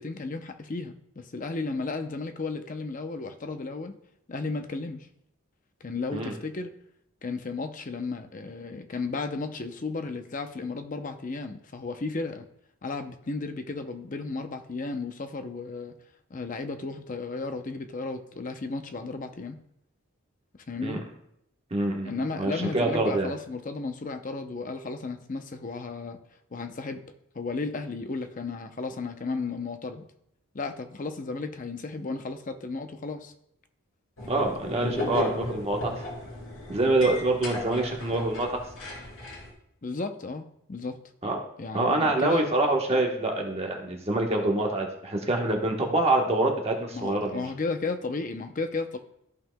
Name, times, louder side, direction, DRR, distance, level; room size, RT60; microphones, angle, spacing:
voice 1, 0.0-4.0 4.3-5.1 5.8-6.7 7.2-12.5 12.8-16.0 16.3-19.6 20.7-21.0 22.0-26.2 26.5-27.0 27.3-30.0 30.5-33.3 39.8-41.0 41.6-42.5 46.9-49.0, left 3 dB, 40° left, 7 dB, 0.6 m, -34 dB
voice 2, 21.7-23.3 34.3-35.9 36.7-38.6 41.2-41.4 41.7-47.5, right 2 dB, 30° right, 1 dB, 1.1 m, -26 dB
sound 1, 34.2-39.5, left 2 dB, 80° left, 3.1 m, -35 dB
14.0 x 5.6 x 2.2 m, 0.75 s
head